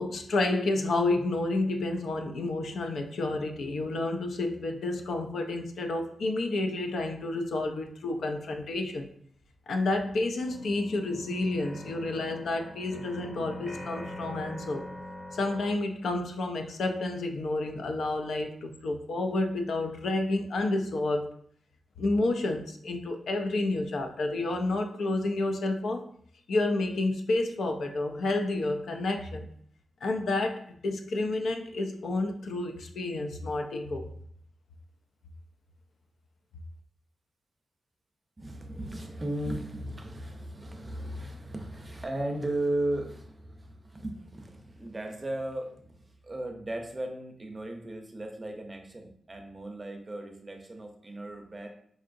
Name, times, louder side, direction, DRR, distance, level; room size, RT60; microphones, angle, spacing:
voice 1, 0.0-9.1 9.7-14.9 15.3-21.3 22.0-26.0 26.5-29.5 30.0-34.1, left 2 dB, 75° left, 5 dB, 0.4 m, -30 dB
sound 1, 9.4-9.5 9.9-15.7, left 1 dB, 30° left, 0.8 m, -42 dB
voice 2, 38.4-51.7, right 1 dB, 20° right, 3 dB, 0.5 m, -36 dB
4.7 x 2.7 x 2.5 m, 0.62 s
wide cardioid pair, 135°, 0 cm